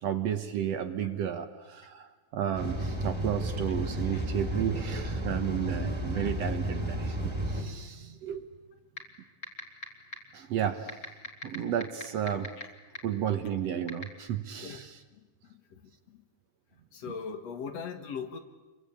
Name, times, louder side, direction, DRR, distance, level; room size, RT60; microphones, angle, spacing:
voice 1, 0.0-8.5 10.3-11.0 11.4-12.5 13.0-14.9, right 9 dB, 60° right, 9 dB, 2.0 m, -32 dB
sound 1, 2.6-7.6, right 1 dB, 10° right, 2.7 m, -32 dB
sound 2, 9.0-9.1 9.4-9.8 10.1-10.2 10.9-12.6 13.0-13.1 13.9-14.0, left 2 dB, 25° left, 2.8 m, -35 dB
voice 2, 15.1-16.2 16.9-18.4, left 6 dB, 60° left, 8 dB, 2.4 m, -41 dB
28.5 x 23.0 x 8.6 m, 1.2 s
omnidirectional pair, 3.7 m